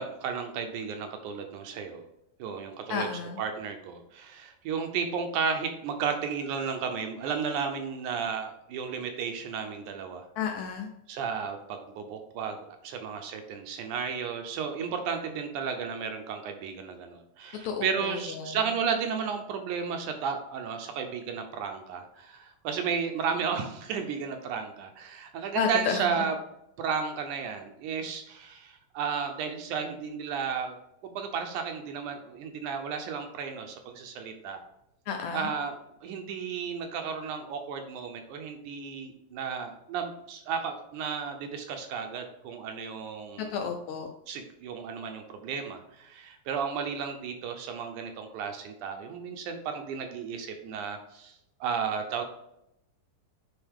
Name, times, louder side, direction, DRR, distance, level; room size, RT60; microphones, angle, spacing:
voice 1, 0.0-2.0 2.4-3.1 3.4-10.3 11.1-26.3 26.8-30.7 31.0-34.6 35.3-35.7 36.0-43.6 44.3-52.2, right 6 dB, 75° right, 5 dB, 1.9 m, -33 dB
voice 2, 2.9-3.4 10.4-10.9 17.6-18.6 25.6-26.2 35.1-35.5 43.4-44.1, left 6 dB, 90° left, 4 dB, 1.6 m, -32 dB
9.1 x 3.9 x 3.5 m, 0.83 s
omnidirectional pair, 4.0 m